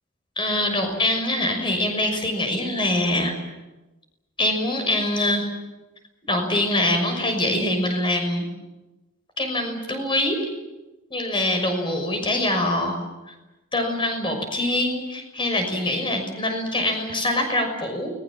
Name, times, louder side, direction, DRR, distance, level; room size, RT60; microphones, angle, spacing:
voice 1, 0.4-3.3 4.4-5.5 6.3-8.5 9.4-10.5 11.1-13.0 13.7-18.1, left 1 dB, 25° left, 5 dB, 6.2 m, -24 dB
29.5 x 21.5 x 7.5 m, 1.1 s
head